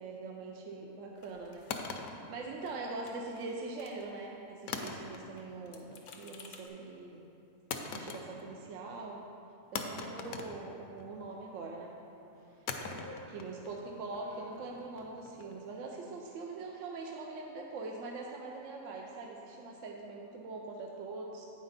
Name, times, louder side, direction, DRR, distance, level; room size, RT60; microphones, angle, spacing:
voice 1, 0.0-1.7 2.0-7.2 7.9-9.2 9.7-11.9 13.3-21.5, right 3 dB, 70° right, 0 dB, 0.9 m, -43 dB
sound 1, 1.2-2.4 2.6-2.8 3.0-4.3 4.6-6.7, left 5 dB, 90° left, 1.2 m, -57 dB
sound 2, 1.7-3.1 4.7-5.5 5.8-6.3 7.7-8.6 8.9-9.0 9.7-11.3 12.7-15.7, left 5 dB, 65° left, 0.9 m, -42 dB
sound 3, 11.1-11.2 11.5-15.0 15.3-15.9, equal, 30° right, 0.4 m, -56 dB
8.6 x 5.1 x 4.0 m, 2.7 s
omnidirectional pair, 1.5 m